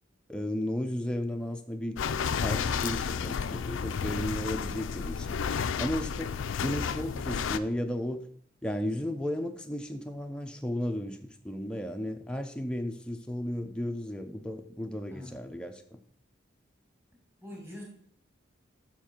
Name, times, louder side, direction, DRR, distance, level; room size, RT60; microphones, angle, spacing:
voice 1, 0.3-2.0 2.3-5.4 5.8-8.3 8.6-16.0, left 1 dB, 5° left, 4 dB, 0.5 m, -34 dB
sound 1, 2.0-7.6, left 6 dB, 85° left, 0.4 m, -32 dB
voice 2, 17.4-17.8, left 1 dB, 10° right, -2 dB, 2.1 m, -43 dB
7.1 x 5.9 x 4.4 m, 0.64 s
head